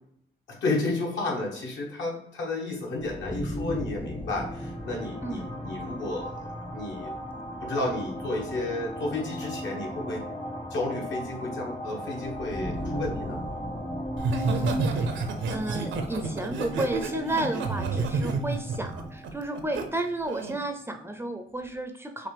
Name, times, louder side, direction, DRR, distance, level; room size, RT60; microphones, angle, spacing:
voice 1, 0.5-7.1 7.6-10.2 10.7-13.4, left 2 dB, 70° left, -1 dB, 1.5 m, -32 dB
sound 1, 3.1-20.6, equal, 25° left, 0.8 m, -36 dB
voice 2, 5.2-5.5 14.3-15.1 15.5-22.3, right 1 dB, 10° right, 6 dB, 0.5 m, -32 dB
Laughter, 14.2-19.8 20.3-20.6, right 4 dB, 70° right, 0.7 m, -30 dB
5.9 x 2.6 x 3.4 m, 0.74 s
cardioid pair, 90°, 20 cm